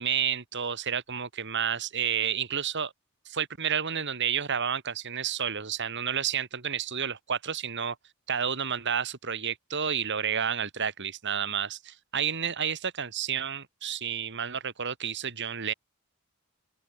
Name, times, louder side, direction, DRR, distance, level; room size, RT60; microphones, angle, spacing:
voice 1, 0.0-2.9 3.3-8.0 8.3-15.7, right 8 dB, 55° right, 2.1 m, -30 dB
open air
head